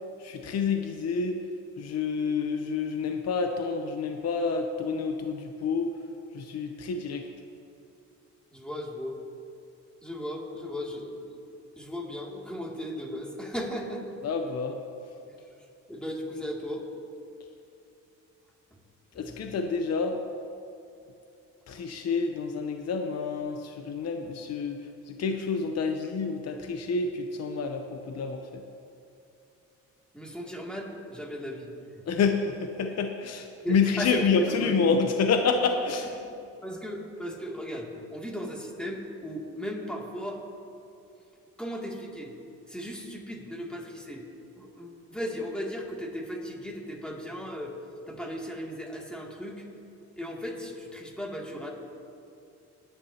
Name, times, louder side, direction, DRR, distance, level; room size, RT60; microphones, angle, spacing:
voice 1, 0.2-1.4 1.8-5.9 6.3-7.3 14.2-14.8 19.1-20.2 21.7-24.8 25.1-28.6 32.1-36.1, left 5 dB, 55° left, 5 dB, 0.8 m, -28 dB
voice 2, 8.5-9.2 10.0-11.4 11.8-14.2 15.3-15.4 15.9-16.9 19.1-19.4 30.1-31.7 31.9-32.1 32.9-33.0 33.6-34.8 36.1-36.2 36.6-40.4 41.6-42.3 42.7-44.3 44.5-47.7 48.1-49.6 50.2-51.7, equal, 5° left, -2 dB, 2.6 m, -36 dB
20.0 x 10.0 x 2.9 m, 2.7 s
cardioid pair, 90°, 30 cm